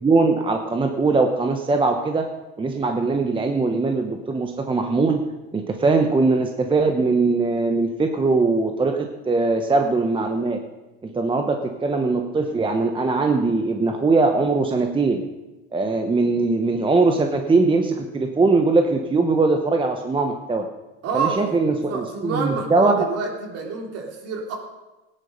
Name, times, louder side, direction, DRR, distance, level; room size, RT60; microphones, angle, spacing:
voice 1, 0.0-2.3 2.6-5.2 5.5-10.6 11.0-15.2 15.7-20.7 21.1-23.0, right 3 dB, 15° right, 4 dB, 1.0 m, -21 dB
voice 2, 21.0-24.6, right 4 dB, 50° right, 1 dB, 3.5 m, -28 dB
17.0 x 10.0 x 5.2 m, 1.1 s
supercardioid pair, 120°, 32 cm